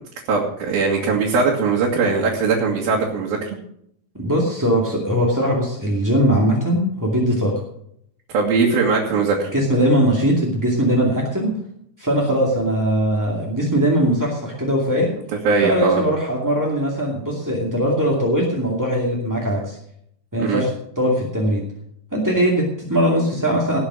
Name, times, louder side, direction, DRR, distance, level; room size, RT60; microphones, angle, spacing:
voice 1, 0.3-3.5 8.3-9.5 15.5-16.0 20.4-20.6, right 4 dB, 80° right, -3 dB, 3.8 m, -20 dB
voice 2, 4.1-7.5 9.5-11.5 12.0-15.1 15.6-19.8 20.3-20.7 20.9-21.6 22.1-23.8, equal, 10° right, -3 dB, 1.4 m, -20 dB
18.5 x 7.2 x 6.2 m, 0.71 s
omnidirectional pair, 4.2 m